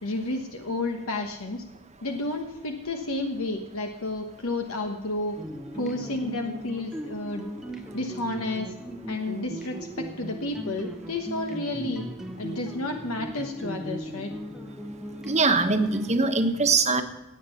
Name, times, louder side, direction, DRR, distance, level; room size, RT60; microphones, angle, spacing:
voice 1, 0.0-1.6 2.0-5.4 5.7-7.5 7.9-8.7 9.1-12.1 12.4-14.3, left 2 dB, 70° left, 4 dB, 1.2 m, -31 dB
sound 1, 5.4-16.1, equal, ahead, 0.8 m, -38 dB
voice 2, 15.2-17.0, right 3 dB, 30° right, 6 dB, 1.3 m, -22 dB
17.0 x 8.9 x 5.7 m, 1.0 s
head